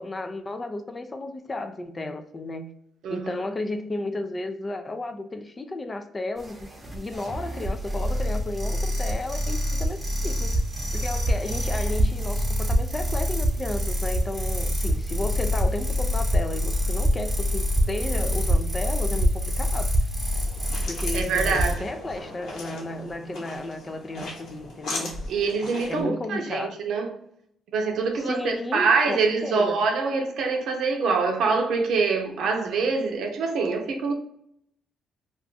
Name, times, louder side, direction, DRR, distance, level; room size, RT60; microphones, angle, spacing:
voice 1, 0.0-2.7 3.1-10.5 10.9-19.9 20.9-25.2 25.9-26.8 28.1-29.8, left 2 dB, 25° left, 0.4 m, -33 dB
sound 1, 6.4-21.7, equal, 20° right, 0.8 m, -25 dB
sound 2, 20.3-26.0, left 2 dB, 70° left, 1.1 m, -38 dB
voice 2, 21.1-21.7 25.3-27.1 27.7-34.1, right 4 dB, 75° right, 0.6 m, -25 dB
2.4 x 2.3 x 3.8 m
cardioid pair, 90°, 0 cm